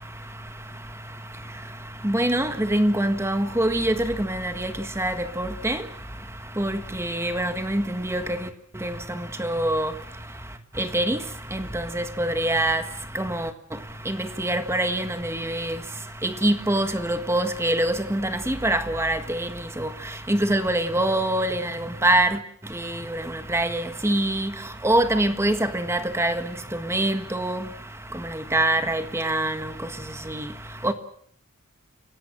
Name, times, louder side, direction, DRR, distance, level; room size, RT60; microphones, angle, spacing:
voice 1, 2.0-3.9 4.3-4.7 5.0-5.8 6.6-7.8 8.1-8.2 8.8-8.9 9.4-9.9 10.8-11.2 12.0-12.8 13.2-13.5 14.1-14.2 14.4-15.7 16.2-18.2 18.5-19.5 19.8-19.9 20.3-21.7 22.0-22.3 23.5-24.5 24.8-26.3 26.9-27.6 28.5-29.6 30.8-30.9, right 1 dB, 10° right, 1.5 m, -24 dB
29.5 x 17.5 x 7.6 m
head